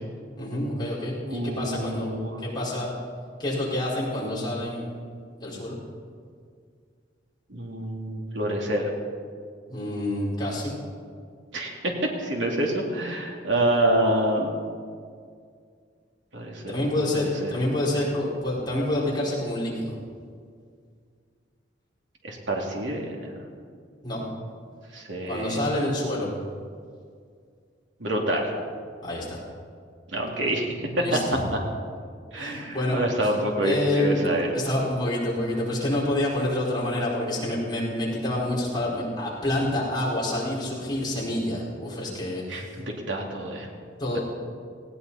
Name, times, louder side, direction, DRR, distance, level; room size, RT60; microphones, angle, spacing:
voice 1, 0.4-2.1 2.4-2.9 3.4-4.8 5.4-5.8 9.7-10.7 16.7-19.9 24.0-24.2 25.3-26.3 29.0-29.4 31.0-31.2 32.4-33.3 33.6-34.2 34.5-42.6 44.0-44.2, left 1 dB, 25° left, -6 dB, 4.9 m, -27 dB
voice 2, 1.2-2.4 7.5-8.9 11.5-11.9 12.2-14.5 16.3-16.8 17.1-17.6 22.2-23.4 24.9-25.6 28.0-28.5 30.1-31.2 31.5-31.6 32.3-34.5 42.5-43.7 44.1-44.2, right 1 dB, 85° right, 0 dB, 2.7 m, -27 dB
19.0 x 16.5 x 4.3 m, 2.1 s
head